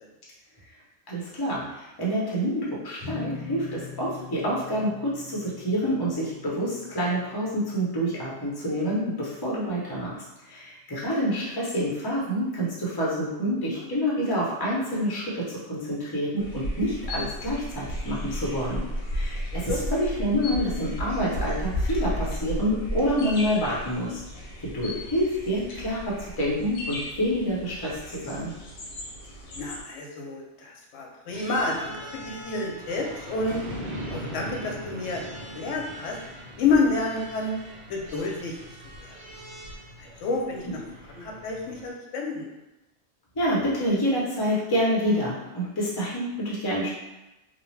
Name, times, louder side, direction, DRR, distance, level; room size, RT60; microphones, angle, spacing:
voice 1, 1.1-10.2 10.5-18.8 19.1-24.2 24.6-28.5 43.4-46.9, equal, 25° left, -6 dB, 0.6 m, -27 dB
sound 1, 3.0-9.4, left 4 dB, 60° right, 1.0 m, -44 dB
sound 2, 16.4-29.8, equal, 60° left, 0.7 m, -34 dB
voice 2, 19.5-19.9 29.5-33.6 34.1-35.2 35.5-36.2 36.6-37.6 37.9-38.6 39.0-39.1 40.0-40.8 41.1-42.5, left 3 dB, 90° left, 0 dB, 0.9 m, -29 dB
sound 3, 31.3-41.9, equal, 80° right, 1.0 m, -40 dB
2.7 x 2.0 x 3.1 m, 1.0 s
omnidirectional pair, 1.2 m